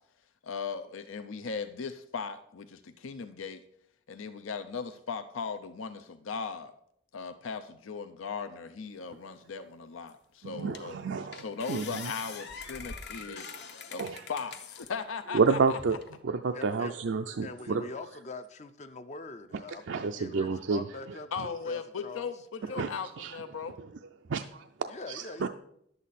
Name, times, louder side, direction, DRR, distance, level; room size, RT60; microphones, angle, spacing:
voice 1, 0.4-3.6 4.1-6.7 7.1-11.0 11.3-13.5 13.9-15.8 21.3-23.8, left 5 dB, 80° left, 0.6 m, -38 dB
sound 1, 10.1-10.2 10.7-11.0 11.3-14.9 15.4-16.1, left 5 dB, 55° left, 0.9 m, -44 dB
voice 2, 10.4-12.1 13.3-13.4 14.0-14.2 15.3-16.0 16.2-17.8 19.9-21.2 22.8-22.9 23.2-23.4 24.3-24.7 25.1-25.5, right 4 dB, 65° right, 0.4 m, -30 dB
voice 3, 16.5-17.0 17.4-22.3 22.6-22.8 24.9-25.5, left 3 dB, 35° left, 0.5 m, -44 dB
11.0 x 8.0 x 4.1 m
head